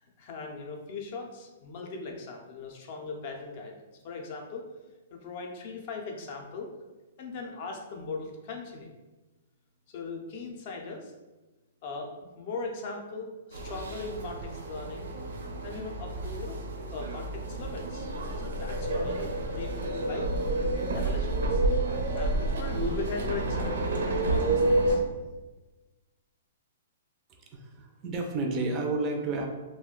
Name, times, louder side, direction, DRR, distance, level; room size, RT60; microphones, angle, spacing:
voice 1, 0.0-4.7 5.1-6.7 7.2-8.9 9.9-11.1 11.8-15.1 15.6-16.6 16.9-18.1 18.4-20.3 20.8-25.0, left 4 dB, 40° left, 2 dB, 0.5 m, -39 dB
sound 1, 13.5-25.0, right 2 dB, 85° right, 0.5 m, -29 dB
voice 2, 27.5-29.5, right 2 dB, 25° right, 2 dB, 0.4 m, -31 dB
2.4 x 2.1 x 3.7 m, 1.2 s
hypercardioid pair, 160°, 0 cm